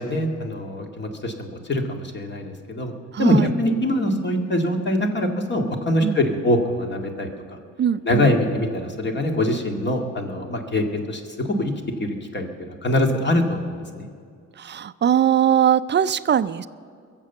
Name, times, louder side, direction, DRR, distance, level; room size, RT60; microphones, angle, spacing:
voice 1, 0.0-2.9 3.2-7.6 8.0-11.7 12.0-14.1, left 1 dB, 35° left, 3 dB, 2.1 m, -23 dB
voice 2, 3.1-3.5 6.0-6.2 7.8-8.3 14.6-16.7, right 9 dB, 35° right, 14 dB, 0.5 m, -20 dB
22.5 x 7.6 x 7.2 m, 2.2 s
cardioid pair, 90°, 30 cm